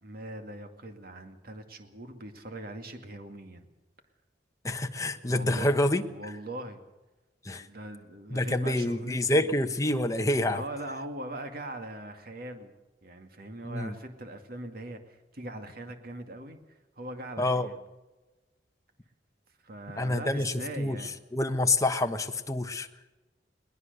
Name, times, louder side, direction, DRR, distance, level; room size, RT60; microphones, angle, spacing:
voice 1, 0.0-3.7 5.2-5.8 6.1-6.8 7.6-9.5 10.5-12.7 13.0-16.6 17.0-17.8 19.6-21.1, right 1 dB, 55° right, 6 dB, 2.3 m, -41 dB
voice 2, 4.6-6.0 7.4-7.7 8.3-10.6 13.6-13.9 17.4-17.7 20.0-21.0 21.3-22.9, left 1 dB, 20° left, 7 dB, 1.1 m, -27 dB
21.5 x 19.0 x 6.8 m, 1.1 s
head